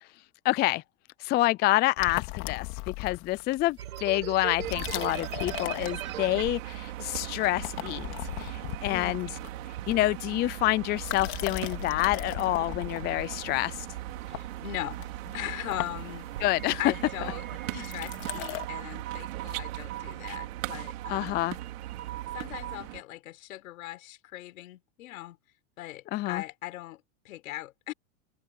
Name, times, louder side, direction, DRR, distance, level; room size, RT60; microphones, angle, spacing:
voice 1, 0.4-0.8 1.2-8.1 8.4-9.3 9.9-13.9 16.4-16.8 17.7-17.9 21.1-21.6 26.1-26.4, left 17 dB, 25° left, 0.4 m, -27 dB
sound 1, 2.0-3.8 4.5-6.5 6.8-7.2 7.4-10.4 10.9-18.6, left 24 dB, 50° left, 2.5 m, -38 dB
sound 2, 3.8-22.8, right 12 dB, 90° right, 4.9 m, -40 dB
sound 3, 4.6-23.0, right 21 dB, 65° right, 5.4 m, -41 dB
voice 2, 8.9-9.2 14.3-15.1 15.3-16.3 16.8-17.4 17.7-21.5 22.3-25.4 25.8-27.9, left 16 dB, 75° left, 5.2 m, -39 dB
supercardioid pair, 125°, 41 cm